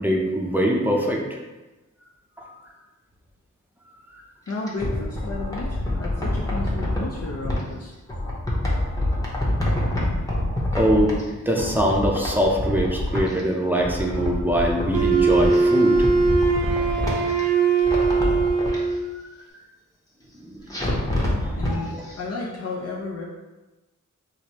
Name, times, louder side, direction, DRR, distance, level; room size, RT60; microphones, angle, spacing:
voice 1, 0.0-1.4 2.4-2.5 10.7-11.2 11.5-15.9 20.6-20.7 21.7-22.0, equal, 5° right, -1 dB, 0.6 m, -23 dB
voice 2, 4.5-7.9 21.6-23.2, left 3 dB, 55° left, -3 dB, 0.5 m, -32 dB
sound 1, 4.5-7.6 8.1-11.3 11.5-13.4 13.7-15.6 15.9-17.4 17.8-18.8 20.7-21.7 22.1-22.2, left 1 dB, 10° left, 0.9 m, -26 dB
Wind instrument woodwind instrument, 14.9-19.1, right 4 dB, 70° right, 0.5 m, -20 dB
4.8 x 2.1 x 2.9 m, 1.1 s
wide cardioid pair, 80°, 31 cm